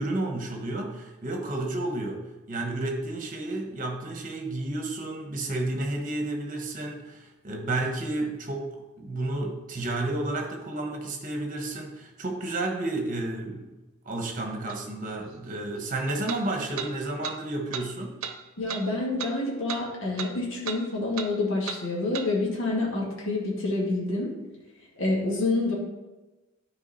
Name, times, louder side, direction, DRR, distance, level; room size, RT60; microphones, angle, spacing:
voice 1, 0.0-13.8 14.0-18.2, right 2 dB, 40° right, 2 dB, 1.3 m, -31 dB
sound 1, 14.7-14.8 16.3-16.4 16.8-16.9 17.2-17.4 17.7-17.9 18.2-18.4 18.7-18.8 19.2-19.3 19.7-19.8 20.2-20.3 20.6-20.8 21.2-21.3 21.7-21.8 22.1-22.3, right 7 dB, 80° right, 0.8 m, -34 dB
voice 2, 18.6-24.3 25.0-25.7, left 2 dB, 65° left, -4 dB, 2.3 m, -27 dB
11.0 x 4.8 x 4.2 m, 1.1 s
head